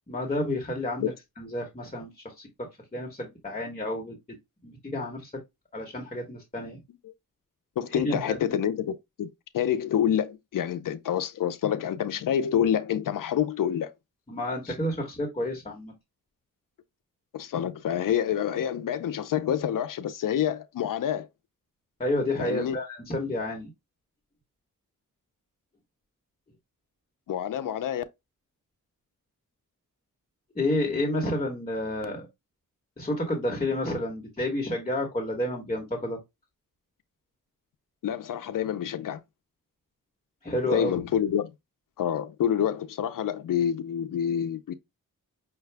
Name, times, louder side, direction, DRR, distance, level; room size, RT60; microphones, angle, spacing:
voice 1, 0.1-2.5 2.9-4.2 4.6-5.4 5.7-6.8 7.9-8.2 14.3-15.9 22.0-23.7 30.5-32.3 33.0-36.2 40.4-40.9, left 1 dB, 20° left, 1.2 m, -30 dB
voice 2, 7.8-13.9 17.3-21.3 22.4-22.8 27.3-28.0 38.0-39.2 40.7-41.5 42.0-44.7, left 9 dB, 75° left, 0.5 m, -27 dB
5.7 x 2.3 x 3.3 m
wide cardioid pair, 110°, 33 cm